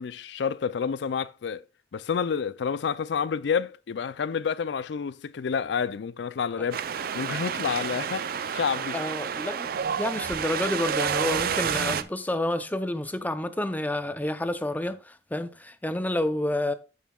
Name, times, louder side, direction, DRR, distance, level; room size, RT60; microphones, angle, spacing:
voice 1, 0.0-1.6 1.9-6.8 7.1-8.9, left 6 dB, 70° left, 0.4 m, -29 dB
Wind, 6.7-12.0, right 7 dB, 55° right, 0.5 m, -29 dB
voice 2, 8.9-16.7, left 1 dB, 10° left, 0.6 m, -29 dB
14.5 x 5.6 x 2.3 m
head